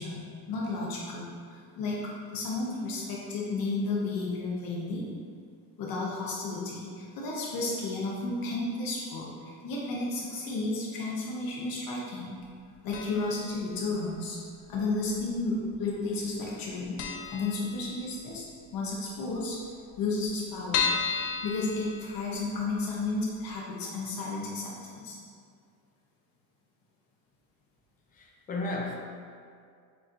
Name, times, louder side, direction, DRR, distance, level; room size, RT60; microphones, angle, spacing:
voice 1, 0.0-2.0 2.3-5.1 5.8-12.4 12.8-14.4 14.7-17.0 17.3-18.4 18.7-19.6 20.0-20.9 21.4-25.2, left 3 dB, 60° left, -4 dB, 0.8 m, -32 dB
sound 1, 12.9-13.5 13.7-13.8 14.8-15.5 15.7-15.9 16.2-16.3 16.6-16.7 17.0-18.3 18.7-18.8 19.0-19.1 19.3-19.4 19.9-22.6 23.0-23.1 23.5-23.6, left 6 dB, 90° left, 0.6 m, -33 dB
voice 2, 28.1-28.9, left 2 dB, 20° left, -1 dB, 0.5 m, -34 dB
6.9 x 2.8 x 2.5 m, 2.2 s
cardioid pair, 145°, 39 cm